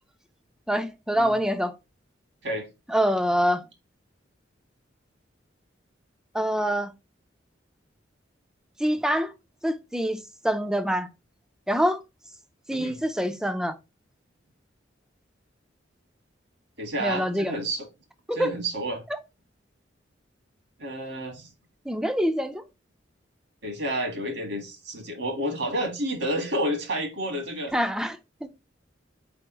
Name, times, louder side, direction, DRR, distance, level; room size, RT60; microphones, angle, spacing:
voice 1, 0.7-1.8 2.9-3.7 6.3-6.9 8.8-9.3 9.6-11.1 11.7-12.0 12.7-13.8 17.0-17.5 18.3-18.5 19.1-19.2 21.9-22.6 27.7-28.2, equal, 5° right, 0.4 m, -25 dB
voice 2, 16.8-17.9 18.3-19.0 20.8-21.5 23.6-27.7, right 1 dB, 80° right, 1.7 m, -30 dB
4.6 x 3.4 x 2.9 m
head